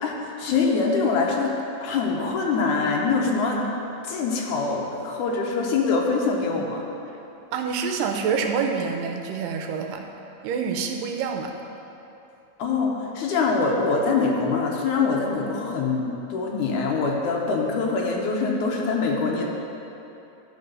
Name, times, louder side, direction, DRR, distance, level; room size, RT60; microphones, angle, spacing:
voice 1, 0.0-1.5 1.8-3.6 4.0-6.8 12.6-19.5, left 4 dB, 75° left, -1 dB, 2.1 m, -24 dB
voice 2, 7.5-10.0 10.4-11.5, right 6 dB, 80° right, 3 dB, 2.2 m, -27 dB
11.0 x 4.3 x 5.4 m, 2.9 s
omnidirectional pair, 4.0 m